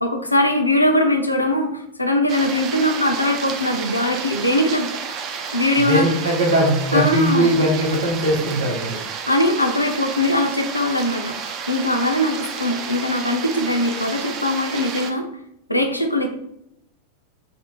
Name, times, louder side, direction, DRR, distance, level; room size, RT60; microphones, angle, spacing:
voice 1, 0.0-4.9 5.5-6.1 6.9-7.5 9.3-15.3 15.7-16.3, left 1 dB, 85° left, 3 dB, 0.3 m, -21 dB
sound 1, 2.3-15.1, right 6 dB, 35° right, 0.3 m, -31 dB
voice 2, 5.8-9.0, right 1 dB, 65° right, -2 dB, 0.9 m, -19 dB
2.5 x 2.0 x 2.8 m, 0.78 s
figure-of-eight pair, 90°, 0 cm